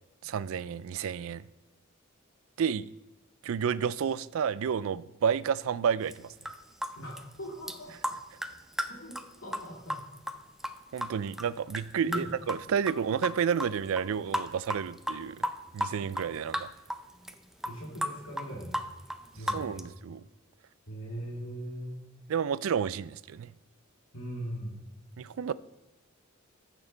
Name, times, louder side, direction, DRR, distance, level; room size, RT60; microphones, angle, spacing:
voice 1, 0.2-1.4 2.6-2.9 3.4-6.3 10.9-15.4 15.7-16.7 19.5-20.2 22.3-23.5 25.2-25.5, right 7 dB, 70° right, 0.4 m, -30 dB
sound 1, 6.1-6.2 6.4-6.9 7.2-7.3 7.7-7.8 8.0-11.8 12.1-13.0 13.2-13.7 14.0-14.1 14.3-16.3 16.5-17.0 17.3-17.4 17.6-19.8, equal, ahead, 0.5 m, -33 dB
voice 2, 7.0-8.1 8.9-10.0 12.0-12.3 17.6-18.9 19.3-19.9 20.9-22.1 24.1-24.8, right 1 dB, 90° left, 2.1 m, -40 dB
14.0 x 6.4 x 3.9 m
head